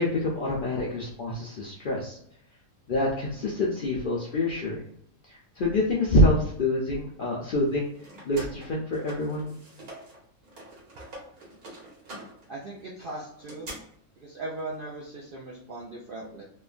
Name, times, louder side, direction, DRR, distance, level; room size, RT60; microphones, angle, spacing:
voice 1, 0.0-2.2 2.9-4.8 5.3-7.9 8.2-9.5, left 1 dB, 80° left, -3 dB, 0.4 m, -26 dB
sound 1, 7.6-10.2 10.4-13.8, right 1 dB, 85° right, 1.6 m, -45 dB
voice 2, 12.5-13.7 14.2-16.4, right 2 dB, 70° right, -3 dB, 0.5 m, -38 dB
3.1 x 2.2 x 2.4 m, 0.68 s
omnidirectional pair, 1.5 m